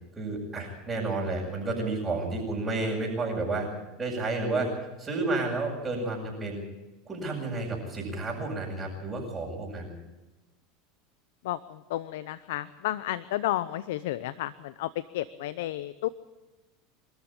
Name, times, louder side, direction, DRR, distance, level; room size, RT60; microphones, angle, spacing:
voice 1, 0.2-3.7 4.0-6.6 7.1-9.9, right 2 dB, 20° right, -5 dB, 7.1 m, -31 dB
voice 2, 11.4-16.1, left 14 dB, 75° left, 15 dB, 0.7 m, -32 dB
25.5 x 13.5 x 8.9 m, 1.1 s
supercardioid pair, 105°, 0 cm